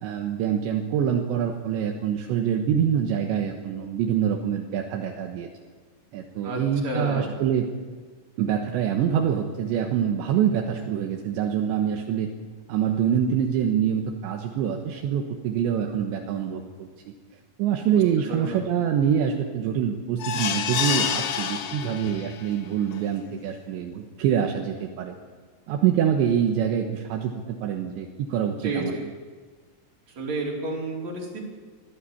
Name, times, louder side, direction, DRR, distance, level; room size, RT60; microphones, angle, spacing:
voice 1, 0.0-5.5 6.1-7.7 8.4-12.3 12.7-16.9 17.6-25.2 25.7-28.9, right 8 dB, 75° right, 2 dB, 3.5 m, -25 dB
voice 2, 6.4-7.3 18.3-18.7 28.6-29.1 30.1-31.4, right 2 dB, 40° right, -2 dB, 5.4 m, -30 dB
sound 1, 20.2-22.5 22.9-23.0 23.4-23.5, left 8 dB, 70° left, 2.0 m, -28 dB
24.0 x 15.0 x 8.6 m, 1.5 s
omnidirectional pair, 5.4 m